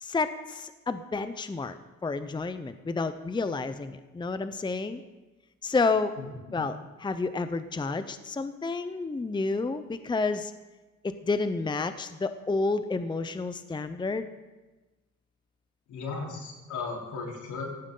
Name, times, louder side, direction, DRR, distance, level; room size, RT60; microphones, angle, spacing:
voice 1, 0.0-5.0 5.6-6.1 6.5-10.5 11.0-14.3, left 3 dB, 15° left, 11 dB, 0.7 m, -30 dB
voice 2, 6.2-6.7 15.9-17.6, left 4 dB, 80° left, -1 dB, 3.9 m, -36 dB
17.5 x 15.0 x 3.9 m, 1.2 s
cardioid pair, 90°, 30 cm